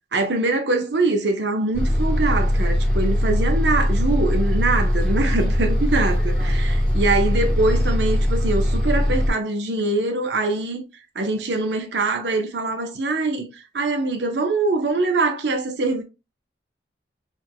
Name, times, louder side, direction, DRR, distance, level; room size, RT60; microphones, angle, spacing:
voice 1, 0.1-10.8 11.1-16.0, right 2 dB, 80° right, 0.9 m, -23 dB
Bus, 1.7-9.3, equal, 5° left, 1.3 m, -20 dB
4.4 x 3.5 x 2.2 m
head